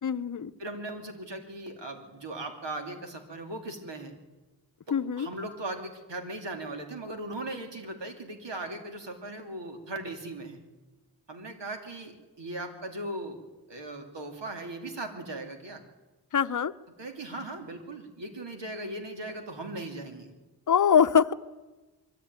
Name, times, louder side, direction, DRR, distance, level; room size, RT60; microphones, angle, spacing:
voice 1, 0.0-0.5 4.9-5.3 16.3-16.7 20.7-21.3, left 7 dB, 45° left, 10 dB, 0.7 m, -23 dB
voice 2, 0.6-4.1 4.9-10.6 11.3-13.4 13.7-15.8 17.0-20.3, right 2 dB, 75° right, 4 dB, 2.8 m, -38 dB
22.5 x 14.0 x 9.5 m, 1.2 s
wide cardioid pair, 65°, 43 cm